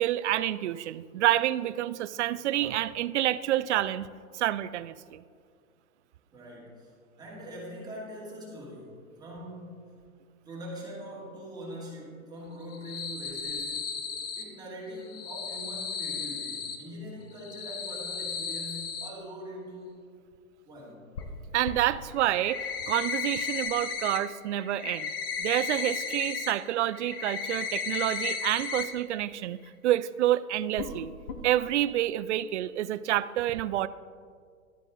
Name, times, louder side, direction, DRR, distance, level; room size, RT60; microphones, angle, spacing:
voice 1, 0.0-4.1 4.3-5.2 21.5-25.1 25.4-29.6 29.8-31.1 31.4-33.9, right 13 dB, 55° right, 16 dB, 0.5 m, -28 dB
voice 2, 6.3-9.8 10.4-13.9 14.4-20.0 20.6-21.1, equal, 10° right, -5 dB, 2.5 m, -42 dB
sound 1, 12.6-14.4 15.0-16.8 17.3-19.1 21.1-21.2 21.6-21.7 22.2-24.2 24.5-26.5 26.9-28.8 29.2-29.3 29.7-29.8 30.8-30.9 31.3-31.4, left 5 dB, 20° left, 0.4 m, -34 dB
12.0 x 9.8 x 3.9 m, 2.1 s
hypercardioid pair, 140°, 42 cm